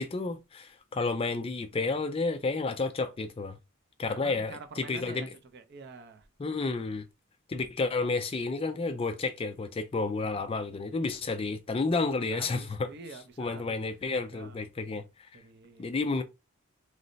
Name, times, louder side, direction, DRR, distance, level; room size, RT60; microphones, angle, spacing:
voice 1, 0.0-3.6 4.0-5.3 6.4-7.1 7.5-12.9 13.4-15.0 15.8-16.2, left 3 dB, 25° left, 0.3 m, -31 dB
voice 2, 4.1-6.3 10.4-10.5 12.3-13.8 14.3-14.6 15.3-15.9, right 4 dB, 50° right, 0.5 m, -47 dB
3.1 x 2.0 x 3.8 m
head